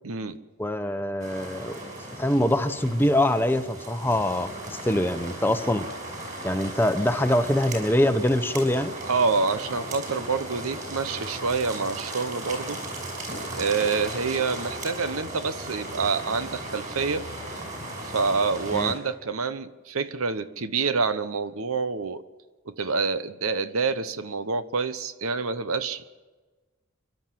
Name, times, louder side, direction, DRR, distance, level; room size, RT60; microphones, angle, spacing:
voice 1, 0.0-0.4 9.0-12.8 13.5-17.2 18.0-22.2 22.7-26.1, right 4 dB, 85° right, 12 dB, 1.0 m, -27 dB
voice 2, 0.6-1.8 2.2-5.9 6.4-8.9 18.7-18.9, left 1 dB, 10° left, 9 dB, 0.8 m, -24 dB
sound 1, 1.2-18.9, right 1 dB, 35° right, 6.2 m, -36 dB
29.5 x 12.0 x 7.7 m, 1.3 s
head